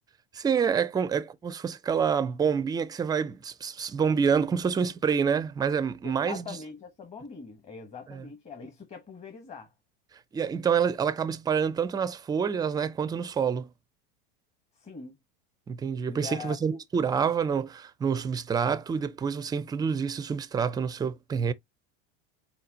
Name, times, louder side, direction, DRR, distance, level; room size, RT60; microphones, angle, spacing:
voice 1, 0.3-6.6 8.1-8.3 10.3-13.7 15.7-21.5, right 6 dB, 15° right, 0.4 m, -27 dB
voice 2, 6.0-9.7 14.8-15.2 16.1-16.5, left 5 dB, 20° left, 1.1 m, -42 dB
4.5 x 4.1 x 2.7 m
supercardioid pair, 125°, 30 cm